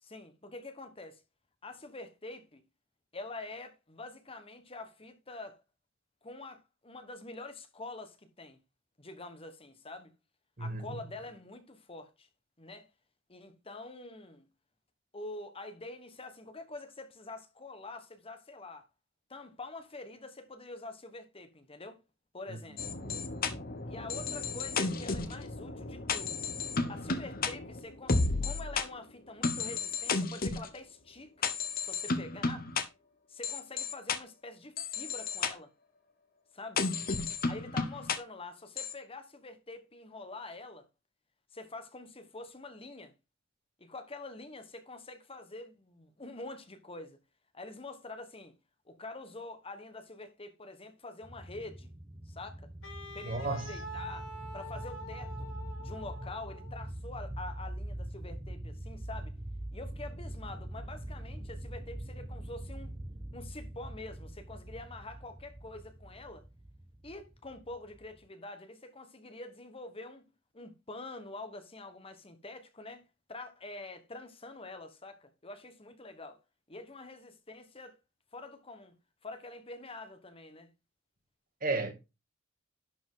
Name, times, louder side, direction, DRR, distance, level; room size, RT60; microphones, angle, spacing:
voice 1, 0.0-1.2 1.6-2.6 3.1-5.6 6.2-8.6 9.0-10.1 10.6-12.3 12.6-12.9 13.3-14.5 15.1-18.8 19.3-22.0 22.3-22.8 23.9-26.5 26.9-31.5 31.8-32.7 33.3-35.7 36.5-36.8 37.5-40.9 41.5-43.1 43.8-47.2 47.5-48.5 48.9-51.9 52.2-52.7 53.1-54.3 54.5-55.5 55.8-59.3 59.7-63.0 63.3-66.5 67.0-70.2 70.5-73.0 73.3-76.4 76.7-78.0 78.3-78.9 79.2-80.7, left 2 dB, 30° left, 1.4 m, -46 dB
sound 1, 22.8-28.8 29.4-30.7 31.4-32.8 33.4-34.2 34.8-35.5 36.8-38.2 38.8-38.9, left 4 dB, 45° left, 1.1 m, -33 dB
voice 2, 22.9-23.3 53.2-53.7 81.6-81.9, right 3 dB, 45° right, 1.8 m, -34 dB
sound 2, 51.2-68.2, right 1 dB, 25° right, 1.0 m, -43 dB
Wind instrument woodwind instrument, 52.8-56.9, right 1 dB, 70° left, 1.9 m, -46 dB
11.0 x 5.1 x 3.8 m
head